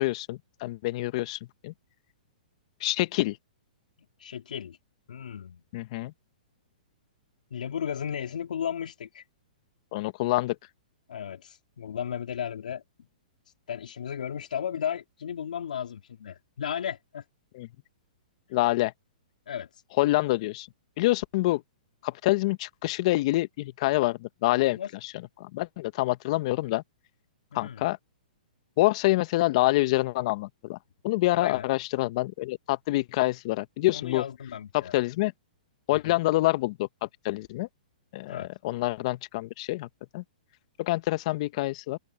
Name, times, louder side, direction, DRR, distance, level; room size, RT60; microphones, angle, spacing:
voice 1, 0.0-1.7 2.8-3.4 5.7-6.1 9.9-10.5 17.5-17.7 18.5-18.9 20.0-20.7 21.0-21.6 22.0-24.8 25.4-26.8 27.5-28.0 28.8-30.8 31.0-34.2 34.7-35.3 35.9-37.7 38.1-39.9 40.1-40.2 40.8-42.0, left 19 dB, 50° left, 1.4 m, -26 dB
voice 2, 4.2-4.8 5.1-5.6 7.5-9.2 11.1-12.8 13.7-17.2 19.5-19.7 24.7-24.9 27.5-27.8 31.3-31.7 33.9-35.0 35.9-36.1 38.3-38.5, left 8 dB, 75° left, 3.7 m, -35 dB
hypercardioid pair, 130°, 5 cm